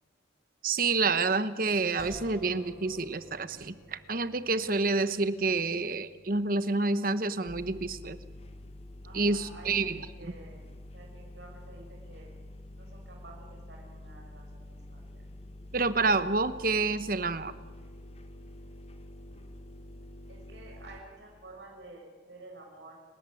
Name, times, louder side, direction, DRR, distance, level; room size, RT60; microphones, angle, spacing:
voice 1, 0.6-8.2 9.1-10.0 15.7-17.5, right 3 dB, 45° right, 13 dB, 1.0 m, -28 dB
sound 1, 2.0-15.1, equal, ahead, 5.1 m, -55 dB
sound 2, 7.5-21.0, left 1 dB, 30° left, 1.4 m, -47 dB
voice 2, 9.0-12.3 12.7-15.3 20.3-23.0, right 2 dB, 70° right, 0 dB, 6.0 m, -51 dB
30.0 x 14.0 x 9.9 m, 1.5 s
head